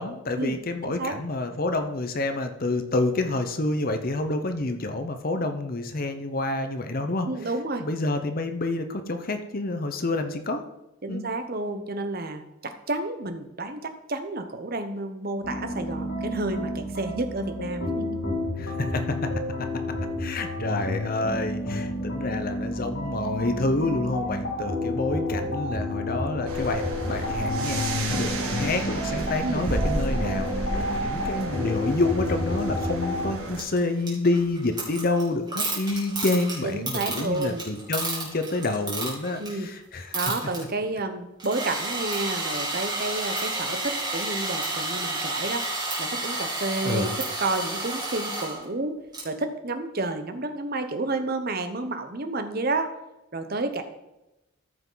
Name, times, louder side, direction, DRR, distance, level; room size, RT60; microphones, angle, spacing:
voice 1, 0.0-7.3 7.8-10.6 11.1-11.3 18.6-19.3 20.2-40.2 46.8-47.1, left 2 dB, 40° left, 7 dB, 0.8 m, -28 dB
voice 2, 0.8-1.1 7.3-7.8 11.0-18.4 29.4-29.6 36.6-37.6 39.4-39.7 40.1-45.6 46.0-49.0 49.2-52.9 53.3-53.8, right 2 dB, 45° right, 7 dB, 0.9 m, -30 dB
sound 1, 15.4-33.3, left 1 dB, 65° left, 2.3 m, -30 dB
sound 2, 26.4-33.6, right 2 dB, 80° right, 1.6 m, -32 dB
sound 3, 33.6-39.6 39.9-40.6 41.4-48.6 49.1-49.2, right 2 dB, 20° right, 2.8 m, -31 dB
14.0 x 5.8 x 3.9 m, 0.94 s
head